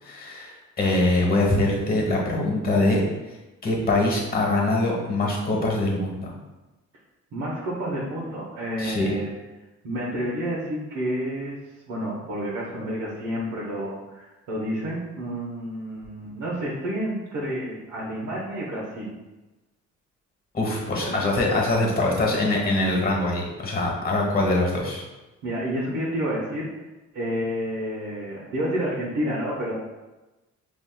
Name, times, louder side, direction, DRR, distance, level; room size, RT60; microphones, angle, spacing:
voice 1, 0.0-3.0 3.6-6.3 8.8-9.1 20.5-25.0, left 2 dB, 30° left, -1 dB, 1.2 m, -23 dB
voice 2, 7.3-9.3 9.8-11.6 11.9-19.1 21.0-21.2 25.4-26.7 27.1-29.7, equal, 80° right, -7 dB, 0.9 m, -29 dB
5.2 x 2.7 x 2.2 m, 1.1 s
cardioid pair, 90°, 30 cm